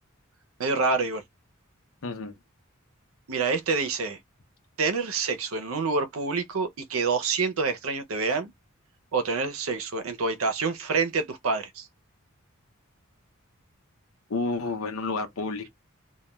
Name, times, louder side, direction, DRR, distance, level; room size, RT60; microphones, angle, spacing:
voice 1, 0.6-1.2 3.3-4.2 4.8-8.5 9.1-11.9, right 4 dB, 75° right, 0.6 m, -27 dB
voice 2, 2.0-2.3 14.3-15.7, left 3 dB, 80° left, 0.7 m, -30 dB
2.3 x 2.2 x 3.0 m
head